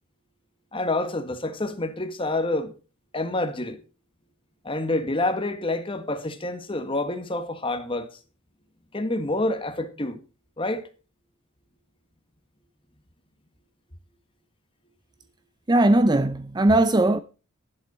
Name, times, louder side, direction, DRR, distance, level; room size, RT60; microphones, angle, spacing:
voice 1, 0.7-2.7 3.1-3.8 4.6-8.2 8.9-10.2 10.6-10.9, left 2 dB, 25° left, 1.5 m, -28 dB
voice 2, 15.7-17.2, right 1 dB, 20° right, 0.5 m, -19 dB
11.5 x 11.5 x 4.2 m
head